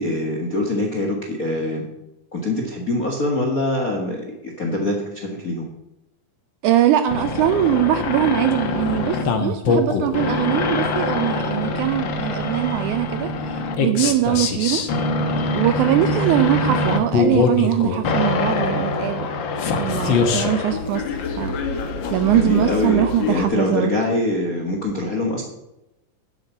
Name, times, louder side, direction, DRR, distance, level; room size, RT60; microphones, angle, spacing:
voice 1, 0.0-1.8 2.3-5.7 22.2-25.4, left 1 dB, 45° left, 2 dB, 1.1 m, -24 dB
voice 2, 6.6-13.3 13.8-14.8 15.5-19.3 19.8-21.1 21.3-21.6 22.1-23.9, right 12 dB, 80° right, 10 dB, 1.8 m, -21 dB
sound 1, 7.1-23.5, left 3 dB, 75° left, 1.0 m, -23 dB
10.5 x 8.0 x 7.1 m, 0.91 s
omnidirectional pair, 4.0 m